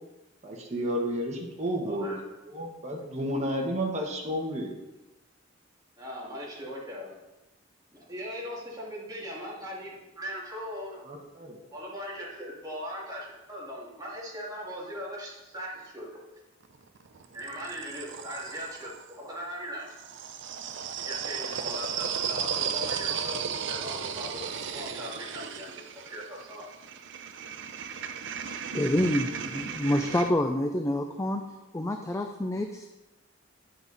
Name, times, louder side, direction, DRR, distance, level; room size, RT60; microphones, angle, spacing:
voice 1, 0.4-2.1 2.5-4.7 11.0-11.6, equal, 35° right, 0 dB, 1.4 m, -32 dB
voice 2, 1.8-2.2 6.0-7.2 7.9-11.0 11.7-16.3 17.3-19.9 21.0-26.6, equal, 20° right, -5 dB, 2.4 m, -39 dB
sound 1, 16.6-19.1 19.9-30.3, right 7 dB, 65° right, 0.6 m, -35 dB
voice 3, 28.7-31.4 31.7-32.9, left 1 dB, 15° left, 5 dB, 0.4 m, -27 dB
10.5 x 6.0 x 4.1 m, 1.0 s
head